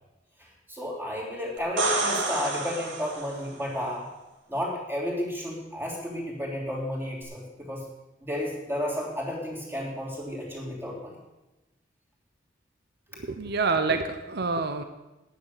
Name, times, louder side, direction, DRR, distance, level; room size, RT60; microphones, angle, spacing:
voice 1, 0.4-4.1 4.5-7.8 8.2-11.2, equal, 10° right, -3 dB, 3.2 m, -32 dB
sound 1, 1.6-3.5 7.2-7.3, right 3 dB, 80° right, 2.4 m, -29 dB
voice 2, 13.1-14.8, right 4 dB, 60° right, 8 dB, 0.8 m, -27 dB
10.0 x 9.4 x 6.6 m, 1.0 s
head